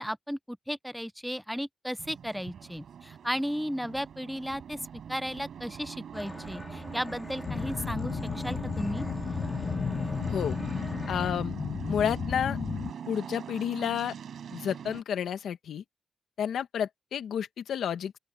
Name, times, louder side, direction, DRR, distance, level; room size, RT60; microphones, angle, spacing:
voice 1, 0.0-4.8 5.1-9.0, equal, ahead, 0.5 m, -35 dB
sound 1, 2.0-15.0, right 8 dB, 70° right, 6.8 m, -42 dB
sound 2, 6.1-11.3, left 2 dB, 15° left, 2.1 m, -43 dB
sound 3, 7.4-12.9, left 6 dB, 50° left, 0.6 m, -33 dB
voice 2, 11.1-11.5 11.9-12.6 13.1-14.2 14.5-15.8 16.4-18.2, left 8 dB, 85° left, 1.5 m, -30 dB
open air
wide cardioid pair, 130°, 0 cm